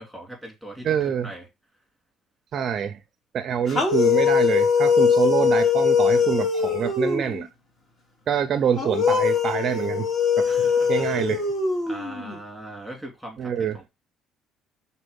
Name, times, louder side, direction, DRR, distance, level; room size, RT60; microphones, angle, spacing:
voice 1, 0.0-1.5 10.4-11.3 11.9-13.9, right 1 dB, 5° left, 3.2 m, -40 dB
voice 2, 0.8-1.3 2.5-3.0 3.3-7.5 8.3-10.1 10.4-10.5 10.9-11.4 13.4-13.8, right 8 dB, 40° right, 0.5 m, -25 dB
sound 1, 3.7-7.4 8.8-12.4, left 6 dB, 30° left, 1.5 m, -21 dB
5.4 x 4.2 x 5.3 m
cardioid pair, 170°, 0 cm